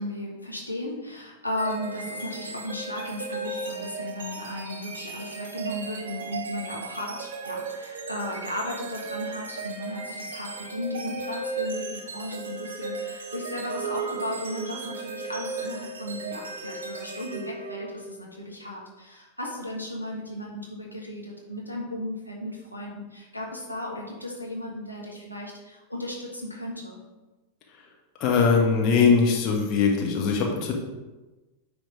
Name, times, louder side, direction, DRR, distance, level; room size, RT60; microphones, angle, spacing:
voice 1, 0.0-27.0, left 1 dB, 90° left, -3 dB, 1.3 m, -35 dB
sound 1, 1.6-18.2, right 4 dB, 60° right, 1.1 m, -36 dB
voice 2, 28.2-30.7, left 5 dB, 35° left, 0 dB, 1.5 m, -21 dB
9.3 x 3.6 x 4.8 m, 1.1 s
figure-of-eight pair, 90°, 0 cm